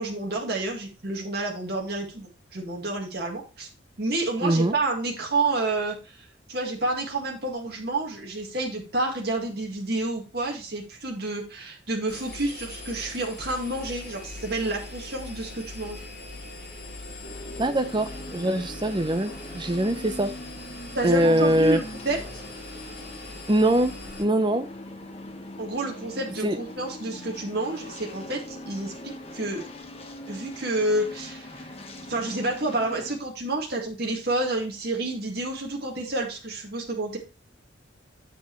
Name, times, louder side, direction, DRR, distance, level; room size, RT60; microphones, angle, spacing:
voice 1, 0.0-3.7 4.0-16.0 20.9-22.2 25.6-29.6 30.3-31.7 32.1-37.2, right 2 dB, 55° right, 1.9 m, -29 dB
voice 2, 4.4-4.7 17.6-20.3 21.0-21.8 23.5-23.9 24.2-24.7 26.4-26.6, right 1 dB, 25° right, 0.6 m, -22 dB
Engine, 12.1-24.2, left 2 dB, 50° left, 4.0 m, -41 dB
sound 1, 17.2-33.2, left 1 dB, 30° left, 1.2 m, -41 dB
7.9 x 7.3 x 3.1 m
head